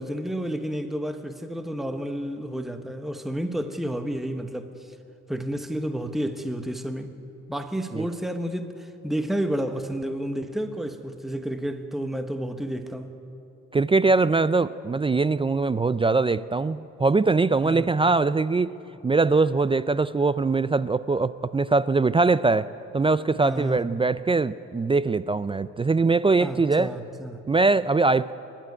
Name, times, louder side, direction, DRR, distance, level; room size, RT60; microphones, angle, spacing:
voice 1, 0.0-4.9 5.3-7.2 7.5-13.2 17.6-17.9 23.4-23.8 26.4-27.4, right 1 dB, ahead, 1.2 m, -31 dB
voice 2, 13.7-18.7 19.0-26.9 27.5-28.3, right 3 dB, 20° right, 0.4 m, -22 dB
23.5 x 12.0 x 9.6 m
cardioid pair, 90°, 30 cm